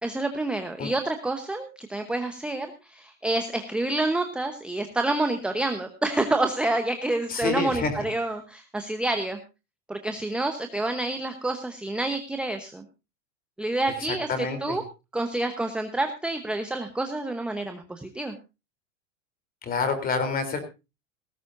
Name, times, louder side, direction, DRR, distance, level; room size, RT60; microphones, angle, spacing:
voice 1, 0.0-9.4 9.9-12.8 13.6-14.8 15.1-18.3, right 2 dB, 5° right, 6 dB, 1.0 m, -28 dB
voice 2, 7.3-8.0 14.0-14.8 19.6-20.6, left 4 dB, 25° left, 10 dB, 3.5 m, -28 dB
18.5 x 15.5 x 2.6 m, 0.28 s
supercardioid pair, 150°, 38 cm